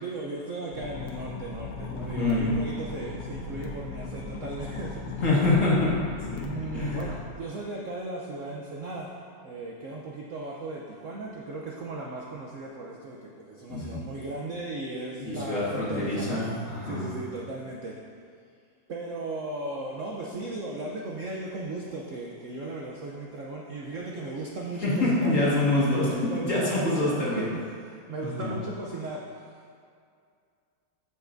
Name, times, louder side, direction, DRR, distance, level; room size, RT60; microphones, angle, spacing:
voice 1, 0.0-5.0 6.4-17.9 18.9-25.4 25.9-29.4, right 2 dB, 60° right, -2 dB, 0.8 m, -36 dB
sound 1, 0.7-7.2, left 4 dB, 85° left, 1.5 m, -38 dB
voice 2, 2.0-2.4 5.2-5.9 6.3-7.1 13.7-14.0 15.2-17.0 24.8-27.5 28.2-28.5, left 2 dB, 45° left, -7 dB, 1.9 m, -26 dB
14.0 x 5.6 x 2.6 m, 2.3 s
omnidirectional pair, 2.0 m